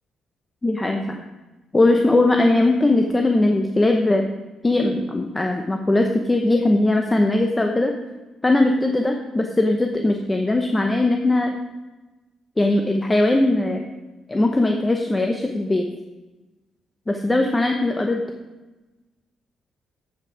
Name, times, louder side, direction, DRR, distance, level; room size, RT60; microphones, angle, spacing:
voice 1, 0.6-1.2 1.7-4.3 4.6-7.9 8.4-11.5 12.6-13.8 14.3-15.9 17.1-18.2, left 2 dB, 20° left, 3 dB, 0.8 m, -20 dB
8.3 x 7.6 x 4.9 m, 1.2 s
cardioid pair, 90°, 0 cm